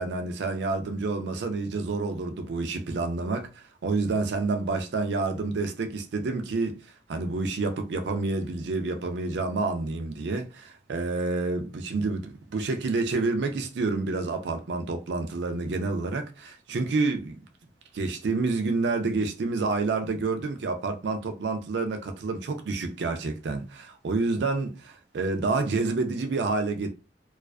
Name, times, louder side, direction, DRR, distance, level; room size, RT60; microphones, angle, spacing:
voice 1, 0.0-6.8 7.1-17.4 17.9-26.9, right 3 dB, 75° right, 0.4 m, -28 dB
2.4 x 2.3 x 2.2 m
head